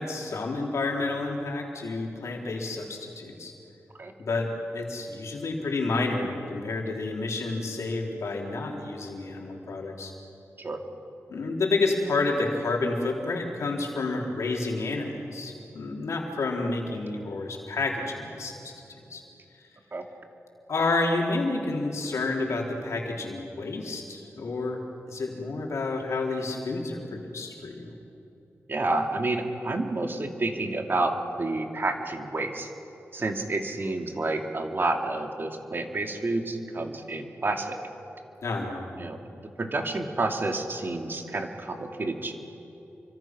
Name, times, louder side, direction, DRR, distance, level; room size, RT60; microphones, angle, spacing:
voice 1, 0.0-3.5 4.2-10.1 11.3-18.7 19.1-19.2 20.7-24.8 25.1-27.9 38.4-38.9, left 3 dB, 85° left, 0 dB, 3.8 m, -30 dB
voice 2, 28.7-32.7 33.1-37.8 39.0-39.2 39.6-42.3, right 2 dB, 45° right, 4 dB, 2.5 m, -29 dB
29.0 x 24.5 x 6.1 m, 2.9 s
cardioid pair, 65°, 5 cm